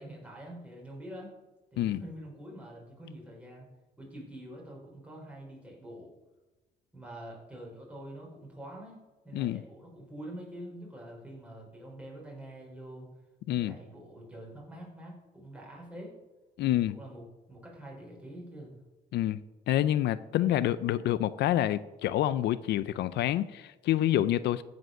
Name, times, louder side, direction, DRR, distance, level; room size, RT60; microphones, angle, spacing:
voice 1, 0.0-1.3 1.7-3.7 4.0-6.1 6.9-9.0 9.2-13.1 13.5-16.1 16.9-18.7, right 1 dB, 5° right, -3 dB, 4.5 m, -46 dB
voice 2, 16.6-17.0 19.1-19.4 19.7-24.6, left 13 dB, 75° left, 15 dB, 0.4 m, -27 dB
15.0 x 5.2 x 6.4 m, 1.1 s
cardioid pair, 130°, 18 cm